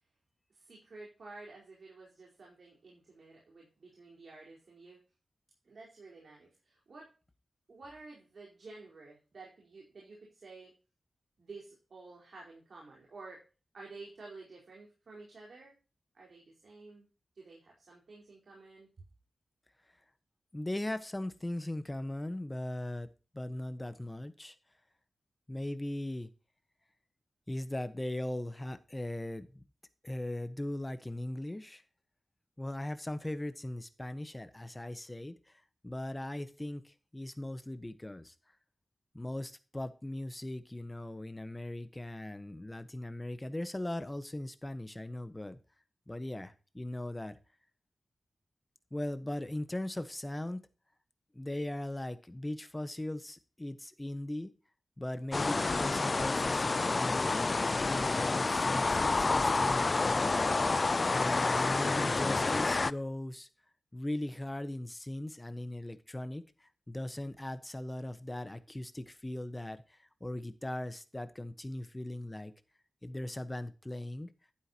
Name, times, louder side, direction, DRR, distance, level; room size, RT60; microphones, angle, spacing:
voice 1, 0.5-5.0 5.6-7.1 7.7-10.7 11.4-13.5 13.7-15.7 16.1-17.1 17.3-18.9, right 3 dB, 65° right, -3 dB, 4.6 m, -51 dB
voice 2, 20.5-23.1 23.3-24.6 25.5-26.3 27.5-29.6 30.0-31.8 32.6-35.5 35.8-38.3 39.1-45.6 46.1-47.4 48.9-50.7 51.3-54.5 55.0-60.5 61.1-63.5 63.9-72.5 73.0-74.3, left 1 dB, 15° left, 11 dB, 1.2 m, -39 dB
sound 1, 55.3-62.9, left 3 dB, 40° left, 0.4 m, -29 dB
12.0 x 9.6 x 3.0 m, 0.34 s
wide cardioid pair, 85°, 0 cm